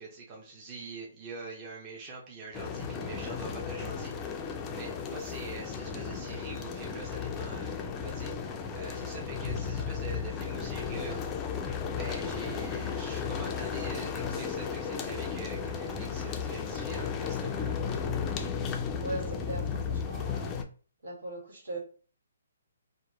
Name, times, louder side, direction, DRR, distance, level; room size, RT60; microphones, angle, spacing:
voice 1, 0.0-11.2 12.0-17.8, right 3 dB, 25° right, -2 dB, 0.6 m, -44 dB
sound 1, 2.5-20.6, left 6 dB, 20° left, 0.3 m, -34 dB
voice 2, 19.0-20.5 21.0-21.8, right 1 dB, 80° right, -1 dB, 1.2 m, -39 dB
2.8 x 2.1 x 2.7 m, 0.40 s
hypercardioid pair, 150°, 0 cm